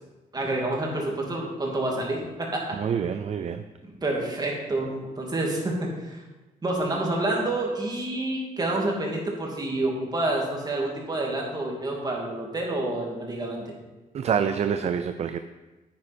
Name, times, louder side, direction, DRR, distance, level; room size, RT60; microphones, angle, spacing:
voice 1, 0.3-2.8 3.8-6.2 6.6-13.7, right 2 dB, 25° right, -1 dB, 2.6 m, -28 dB
voice 2, 2.8-3.6 14.1-15.4, right 7 dB, 45° right, 9 dB, 0.5 m, -26 dB
9.7 x 9.5 x 4.4 m, 1.2 s
cardioid pair, 115°, 15 cm